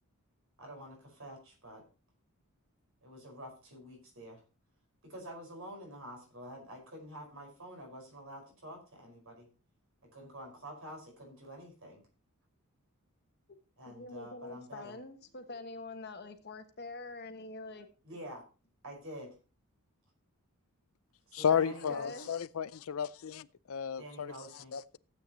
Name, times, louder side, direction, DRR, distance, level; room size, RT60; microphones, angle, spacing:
voice 1, 0.6-1.8 3.0-4.4 5.0-9.5 10.1-12.0 13.8-15.0 18.0-18.4 18.8-19.3 21.3-22.1 24.0-24.7, equal, 60° right, 5.2 m, -48 dB
voice 2, 13.8-17.9 21.5-22.3, left 3 dB, 45° left, 1.4 m, -45 dB
voice 3, 21.3-25.0, left 7 dB, 65° left, 0.5 m, -33 dB
15.5 x 8.7 x 3.0 m
head